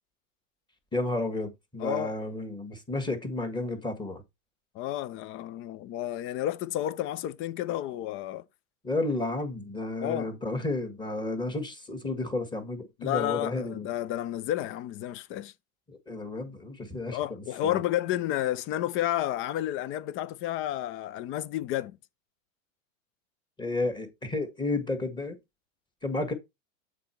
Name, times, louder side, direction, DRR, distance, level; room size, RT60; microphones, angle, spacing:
voice 1, 0.9-4.2 8.8-13.9 15.9-17.8 23.6-25.4 26.0-26.3, left 2 dB, 10° left, 1.5 m, -32 dB
voice 2, 1.8-2.1 4.7-8.4 10.0-10.3 13.0-15.5 17.1-22.0, left 13 dB, 30° left, 0.5 m, -31 dB
7.7 x 4.1 x 4.3 m
hypercardioid pair, 115°, 41 cm